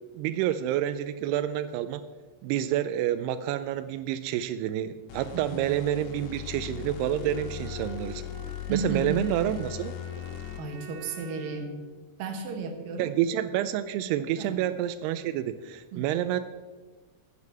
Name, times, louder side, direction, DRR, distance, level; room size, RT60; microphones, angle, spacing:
voice 1, 0.1-2.0 2.4-8.2 8.7-10.0 13.0-16.4, right 11 dB, 90° right, 12 dB, 2.6 m, -28 dB
sound 1, 5.1-10.9, left 12 dB, 90° left, 2.9 m, -39 dB
Bowed string instrument, 6.9-11.8, equal, 25° right, 1.8 m, -46 dB
voice 2, 8.7-9.3 10.6-11.9 12.2-13.1 14.4-14.6 15.9-16.1, right 4 dB, 65° right, 4 dB, 2.9 m, -33 dB
9.6 x 7.4 x 7.5 m, 1.3 s
omnidirectional pair, 4.6 m